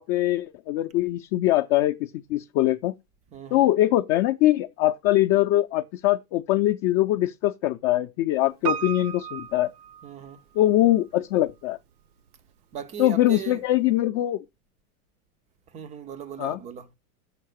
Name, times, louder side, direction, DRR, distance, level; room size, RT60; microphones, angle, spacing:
voice 1, 0.0-2.9 3.5-9.7 10.6-11.8 13.0-14.4 16.4-16.6, left 15 dB, 40° left, 0.5 m, -22 dB
voice 2, 3.3-3.7 10.0-10.4 12.7-13.6 15.7-16.9, right 8 dB, 20° right, 0.3 m, -38 dB
Piano, 8.6-10.7 11.0-11.1, right 8 dB, 85° right, 0.8 m, -33 dB
6.7 x 4.5 x 6.3 m
hypercardioid pair, 120°, 44 cm